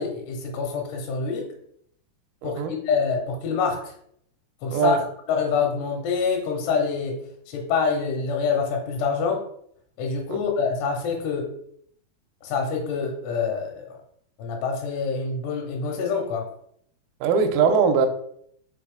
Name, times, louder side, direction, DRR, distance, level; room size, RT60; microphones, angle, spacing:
voice 1, 0.0-1.5 2.4-3.8 4.6-5.0 5.3-7.2 7.5-9.4 10.0-11.5 12.4-14.0 14.4-16.4, left 5 dB, 80° left, 2 dB, 2.9 m, -26 dB
voice 2, 2.4-2.7 4.7-5.0 10.3-10.4 17.2-18.1, right 5 dB, 80° right, 6 dB, 2.3 m, -21 dB
6.3 x 4.1 x 3.6 m, 0.68 s
omnidirectional pair, 4.9 m